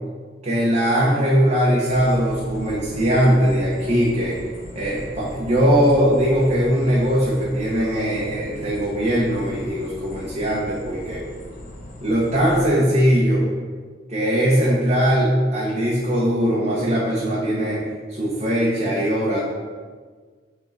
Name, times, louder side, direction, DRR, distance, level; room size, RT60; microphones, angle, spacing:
voice 1, 0.4-4.4 4.7-11.2 12.0-13.5 14.1-17.8 18.1-19.4, equal, 40° right, -6 dB, 1.0 m, -20 dB
sound 1, 1.9-12.7, left 1 dB, 40° left, 1.1 m, -39 dB
6.2 x 3.7 x 4.1 m, 1.5 s
head